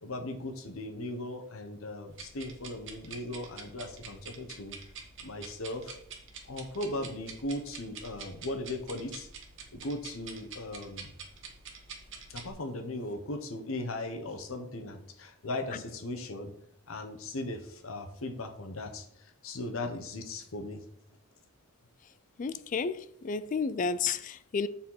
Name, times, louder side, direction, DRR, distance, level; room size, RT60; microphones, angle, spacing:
voice 1, 0.0-4.8 5.2-6.0 6.5-9.3 9.7-11.1 12.3-16.5 16.9-20.8, left 1 dB, 70° left, 1.1 m, -38 dB
sound 1, 2.1-12.5, right 5 dB, 55° right, 1.2 m, -47 dB
voice 2, 22.4-24.7, left 5 dB, 35° left, 0.3 m, -31 dB
7.1 x 4.3 x 5.7 m
head